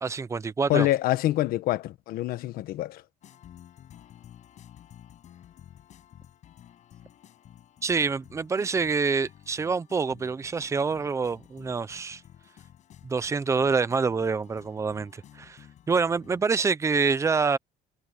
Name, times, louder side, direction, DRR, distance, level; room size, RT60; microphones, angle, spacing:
voice 1, 0.0-0.9 7.8-12.2 13.0-15.6 15.9-17.6, right 5 dB, 20° right, 0.8 m, -26 dB
voice 2, 0.7-3.0, left 15 dB, 70° left, 1.3 m, -26 dB
sound 1, 3.2-16.6, left 11 dB, 50° left, 6.9 m, -52 dB
cardioid pair, 150°, 15 cm